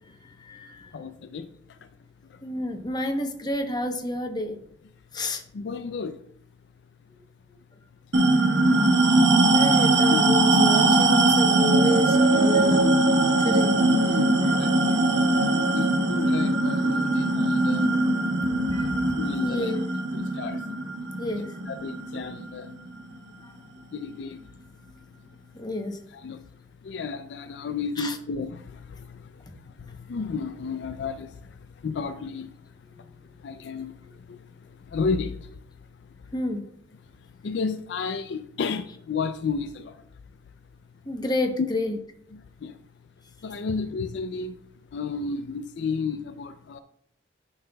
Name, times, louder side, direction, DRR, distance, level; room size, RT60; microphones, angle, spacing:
voice 1, 0.4-0.9 2.4-4.6 5.1-5.4 8.7-8.8 9.2-13.0 13.4-13.8 18.7-18.9 19.4-19.8 21.2-21.5 25.5-26.0 28.0-28.2 36.3-36.6 41.1-42.0, left 1 dB, 20° left, 5 dB, 0.8 m, -29 dB
voice 2, 0.9-1.5 2.3-2.4 5.5-6.2 10.1-10.3 13.3-13.4 13.7-15.1 15.7-17.9 19.2-19.7 20.1-20.6 21.7-22.7 23.9-24.4 26.1-26.4 26.8-31.6 31.8-32.5 33.4-34.4 34.9-35.5 37.4-40.0 41.6-41.7 42.3-42.7 43.4-44.6 44.9-46.8, left 5 dB, 65° left, 10 dB, 0.4 m, -32 dB
sound 1, 8.1-23.0, right 2 dB, 70° right, 0.9 m, -21 dB
11.5 x 5.6 x 2.2 m, 0.69 s
head